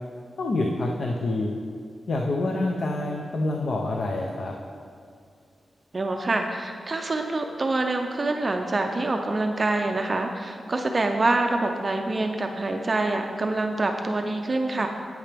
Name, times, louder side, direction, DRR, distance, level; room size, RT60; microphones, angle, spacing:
voice 1, 0.4-1.5 2.1-4.5, left 2 dB, 60° left, 1 dB, 0.6 m, -27 dB
voice 2, 5.9-14.9, right 2 dB, 30° right, 3 dB, 0.5 m, -26 dB
9.0 x 8.8 x 3.4 m, 2.2 s
wide cardioid pair, 145°, 0 cm